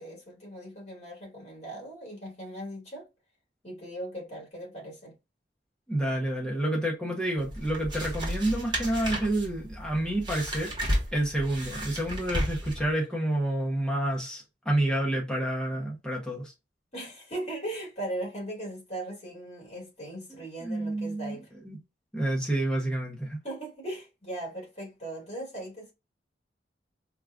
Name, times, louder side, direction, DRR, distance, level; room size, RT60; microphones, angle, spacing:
voice 1, 0.0-3.1 3.6-5.1 16.9-21.5 23.4-25.9, right 1 dB, 35° left, 2.1 m, -38 dB
voice 2, 5.9-10.7 11.1-16.5 20.6-21.3 21.6-21.8 22.1-23.4, right 1 dB, 5° left, 0.8 m, -29 dB
sound 1, 7.4-12.9, equal, 25° right, 1.1 m, -33 dB
4.7 x 2.4 x 2.4 m
head